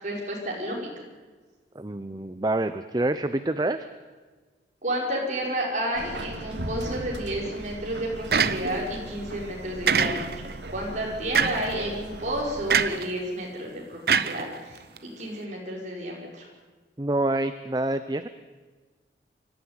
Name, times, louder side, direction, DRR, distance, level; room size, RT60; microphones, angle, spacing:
voice 1, 0.0-0.8 4.8-10.4 10.7-16.5, right 1 dB, 40° right, -2 dB, 5.3 m, -31 dB
voice 2, 1.7-3.9 17.0-18.3, right 2 dB, 20° right, 11 dB, 0.6 m, -27 dB
Subway metro underground, 5.9-12.9, right 1 dB, 90° right, 2.1 m, -38 dB
sound 1, 8.3-9.0 9.9-10.5 11.3-11.8 12.7-13.1 14.1-15.0, right 6 dB, 60° right, 0.8 m, -24 dB
25.0 x 13.0 x 9.8 m, 1.4 s
head